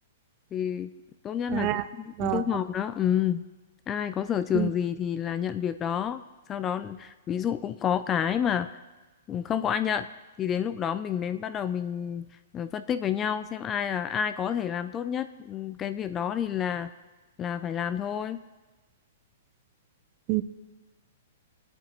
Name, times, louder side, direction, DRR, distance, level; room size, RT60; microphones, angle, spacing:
voice 1, 0.5-0.9 1.2-1.7 2.0-3.4 3.9-6.2 6.5-8.8 9.3-10.1 10.4-12.3 12.5-16.9 17.4-18.4, left 8 dB, 20° left, 12 dB, 0.3 m, -29 dB
voice 2, 1.5-1.9 2.2-2.4 4.5-4.7 20.3-20.4, right 16 dB, 35° right, 13 dB, 0.5 m, -27 dB
22.0 x 8.7 x 3.0 m, 1.2 s
hypercardioid pair, 150°, 0 cm